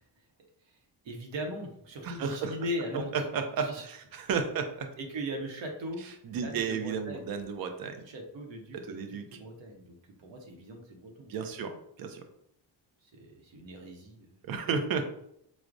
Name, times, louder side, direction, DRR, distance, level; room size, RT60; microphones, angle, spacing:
voice 1, 1.0-3.1 3.6-3.8 5.0-7.3 8.1-9.0 9.3-11.4 13.0-14.4, equal, 75° right, 2 dB, 0.8 m, -39 dB
voice 2, 2.0-2.6 3.1-4.9 6.2-8.0 8.7-9.4 11.3-12.2 14.4-15.1, right 5 dB, 55° right, 7 dB, 0.5 m, -33 dB
4.6 x 2.0 x 2.5 m, 0.74 s
wide cardioid pair, 175°, 44 cm